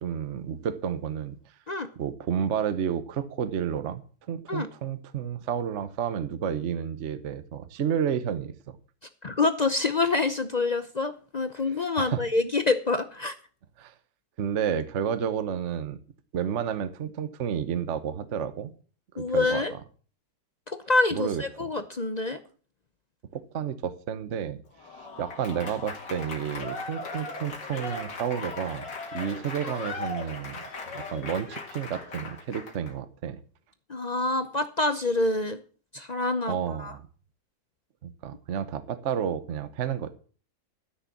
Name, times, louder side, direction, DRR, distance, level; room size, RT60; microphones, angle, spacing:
voice 1, 0.0-1.4 2.0-4.0 4.3-8.8 12.0-12.2 13.8-13.9 14.4-16.0 16.3-18.7 19.1-19.8 21.1-21.7 23.3-24.6 25.2-30.6 30.9-33.4 36.5-37.0 38.0-40.1, right 8 dB, 50° right, 13 dB, 1.1 m, -31 dB
voice 2, 9.2-13.3 19.2-19.7 20.7-22.4 33.9-35.6 35.9-36.9, left 3 dB, 50° left, 10 dB, 0.5 m, -26 dB
Applause / Crowd, 24.7-32.9, left 3 dB, 90° left, 2.7 m, -38 dB
13.0 x 6.5 x 7.2 m, 0.40 s
omnidirectional pair, 1.9 m